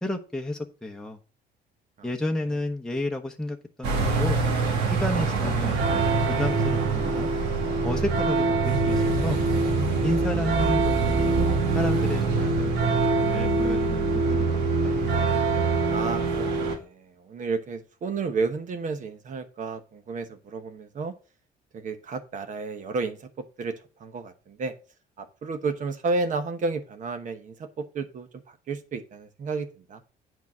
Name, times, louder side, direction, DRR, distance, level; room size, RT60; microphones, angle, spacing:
voice 1, 0.0-1.2 2.0-4.4 4.9-5.8 6.3-7.3 7.8-9.4 10.0-11.3 11.7-12.7 13.3-14.5 14.8-15.1, left 1 dB, 5° left, 0.9 m, -31 dB
sound 1, 3.8-16.8, right 3 dB, 85° right, 2.2 m, -24 dB
voice 2, 10.3-10.8 15.9-21.1 21.7-23.3 23.6-23.7 24.0-24.7 25.2-30.0, right 4 dB, 50° right, 1.1 m, -32 dB
8.3 x 4.7 x 6.1 m
cardioid pair, 110°, 17 cm